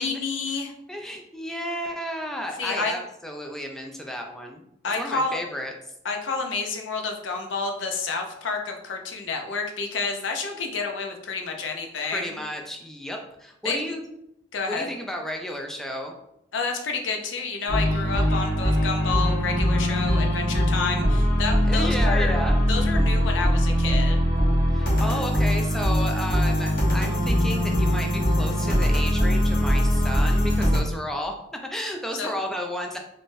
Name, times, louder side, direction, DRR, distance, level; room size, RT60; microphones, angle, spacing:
voice 1, 0.0-0.7 2.6-3.0 4.8-5.4 6.0-12.4 13.6-13.9 14.5-14.9 16.5-22.3 22.7-24.2 32.2-32.3, left 4 dB, 85° left, 3 dB, 0.5 m, -29 dB
voice 2, 0.9-4.6 4.9-5.7 12.1-14.0 14.7-16.1 21.7-22.5 24.7-31.3 31.7-33.0, equal, ahead, 2 dB, 0.3 m, -32 dB
sound 1, 17.7-30.8, equal, 60° left, 1.1 m, -22 dB
3.6 x 2.5 x 2.5 m, 0.79 s
head